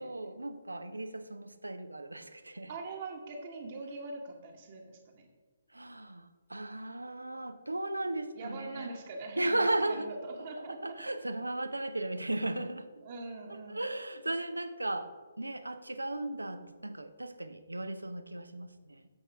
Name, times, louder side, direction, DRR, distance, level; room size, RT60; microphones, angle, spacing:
voice 1, 0.0-2.7 5.7-8.9 9.4-10.1 10.7-12.9 13.5-15.1 15.4-19.1, right 2 dB, 85° right, 10 dB, 0.6 m, -36 dB
voice 2, 2.7-5.3 8.4-10.8 13.0-13.9, right 3 dB, 40° right, 2 dB, 1.2 m, -42 dB
8.0 x 5.4 x 4.7 m, 1.4 s
figure-of-eight pair, 135°, 0 cm